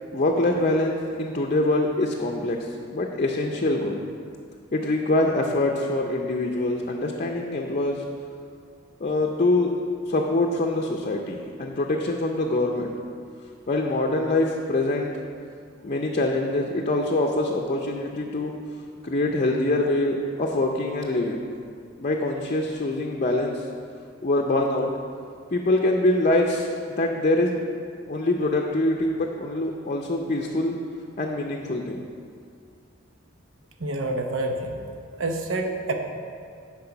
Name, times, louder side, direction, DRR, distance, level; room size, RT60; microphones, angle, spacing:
voice 1, 0.1-4.0 4.7-8.0 9.0-9.8 10.0-12.9 13.7-15.2 15.8-18.5 19.0-21.5 22.0-23.7 24.2-24.9 25.5-27.6 28.1-30.8 31.2-32.0, left 2 dB, 40° left, 1 dB, 0.6 m, -24 dB
voice 2, 33.8-34.8 35.2-35.9, right 2 dB, 80° right, 4 dB, 0.9 m, -27 dB
10.5 x 4.8 x 5.9 m, 2.3 s
head